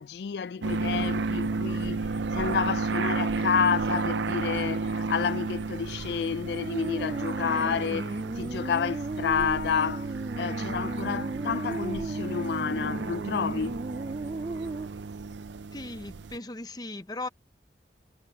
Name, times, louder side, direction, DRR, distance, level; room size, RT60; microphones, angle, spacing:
voice 1, 0.0-13.8, left 6 dB, 70° left, 0.3 m, -30 dB
sound 1, 0.6-16.4, right 4 dB, 90° right, 0.6 m, -32 dB
sound 2, 6.4-14.9, right 2 dB, 30° right, 0.4 m, -35 dB
voice 2, 15.7-17.3, left 2 dB, 20° left, 0.8 m, -37 dB
head